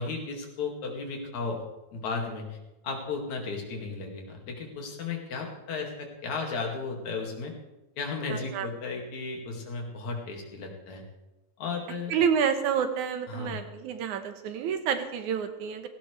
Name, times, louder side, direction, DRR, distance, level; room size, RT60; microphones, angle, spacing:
voice 1, 0.0-1.6 1.9-7.5 8.0-11.0 11.6-12.1 13.3-13.6, left 4 dB, 75° left, 1 dB, 3.5 m, -34 dB
voice 2, 8.3-8.7 12.1-15.9, right 7 dB, 80° right, 7 dB, 2.6 m, -28 dB
17.0 x 16.5 x 3.3 m, 1.0 s
omnidirectional pair, 3.4 m